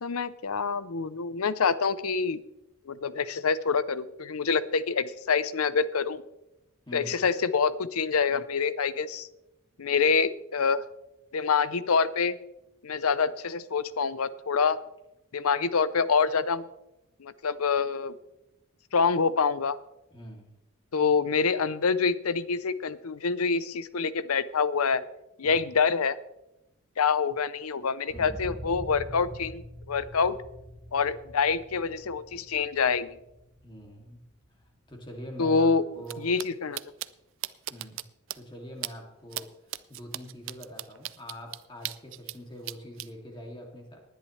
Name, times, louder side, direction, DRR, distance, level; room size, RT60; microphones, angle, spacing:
voice 1, 0.0-2.4 2.9-6.2 6.9-9.3 9.8-10.8 11.3-12.4 12.8-14.8 15.3-16.7 17.2-18.2 18.9-19.8 20.9-25.0 25.4-26.2 27.0-30.4 30.9-33.2 35.4-35.8 36.2-36.8, left 5 dB, 90° left, 16 dB, 0.7 m, -26 dB
voice 2, 6.9-7.2 20.1-20.5 25.4-25.6 28.1-28.5 33.6-34.2 34.9-36.3 37.7-38.0 38.3-39.5 39.9-44.0, equal, 20° left, 1 dB, 2.5 m, -43 dB
sound 1, 28.1-36.0 36.4-36.5, equal, 10° right, 4.4 m, -45 dB
sound 2, 36.0-36.1 36.4-36.5 36.8-37.1 37.4-38.0 38.3-38.4 38.8-38.9 39.3-39.4 39.7-42.4 42.7-43.1, right 15 dB, 60° right, 0.4 m, -35 dB
19.5 x 10.5 x 3.2 m, 0.90 s
head